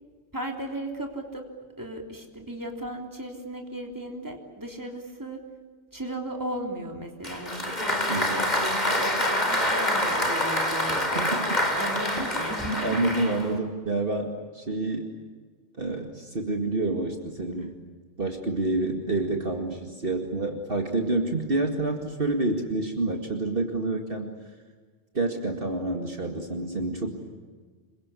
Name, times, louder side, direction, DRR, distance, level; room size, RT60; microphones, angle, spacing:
voice 1, 0.3-1.5 1.8-5.5 5.9-11.2 11.7-13.0, right 1 dB, 15° right, 2 dB, 3.4 m, -35 dB
Applause, 7.2-13.6, left 1 dB, 35° left, 3.9 m, -26 dB
voice 2, 8.1-8.5 11.1-11.5 12.2-12.3 12.8-15.1 15.8-17.7 18.2-24.3 25.1-27.1, right 2 dB, 50° right, 3 dB, 2.4 m, -28 dB
27.0 x 24.0 x 8.3 m, 1.5 s
omnidirectional pair, 1.2 m